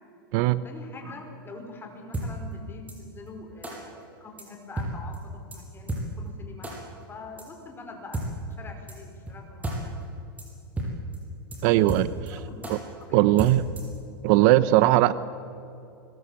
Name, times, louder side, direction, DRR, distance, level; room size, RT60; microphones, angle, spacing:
voice 1, 0.6-6.7 7.1-8.2 8.6-9.9 12.3-12.6 13.0-13.2, left 3 dB, 20° left, 4 dB, 5.0 m, -44 dB
sound 1, 2.1-2.3 2.9-3.0 3.6-3.7 4.4-4.5 4.8-4.9 5.1-5.2 5.5-5.6 5.9-6.0 6.6-6.7 7.4-7.5 8.1-8.3 8.9-9.0 9.3-9.4 9.6-9.8 10.0-10.1 10.4-10.5 10.8-10.9 11.1-11.2 11.5-11.6 11.9-12.3 12.6-12.7 13.4-14.0, right 2 dB, 10° right, 6.9 m, -31 dB
voice 2, 11.6-12.4 12.7-12.8 13.1-13.6 14.2-15.1, right 15 dB, 50° right, 15 dB, 0.9 m, -19 dB
25.0 x 21.5 x 8.4 m, 2.7 s
hypercardioid pair, 130°, 12 cm